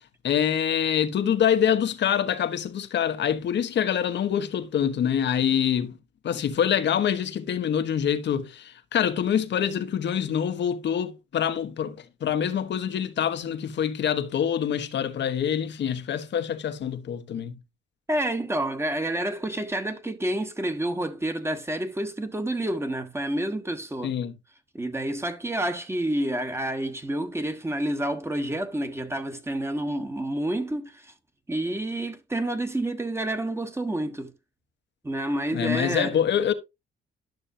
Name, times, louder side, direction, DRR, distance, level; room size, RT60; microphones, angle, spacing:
voice 1, 0.2-6.0 6.2-12.0 12.2-17.5 24.0-24.3 35.5-36.5, left 9 dB, 60° left, 1.3 m, -25 dB
voice 2, 18.1-24.1 24.7-31.1 31.5-34.3 35.0-36.2, right 1 dB, 15° right, 1.5 m, -29 dB
12.0 x 6.4 x 2.7 m
cardioid pair, 90°, 20 cm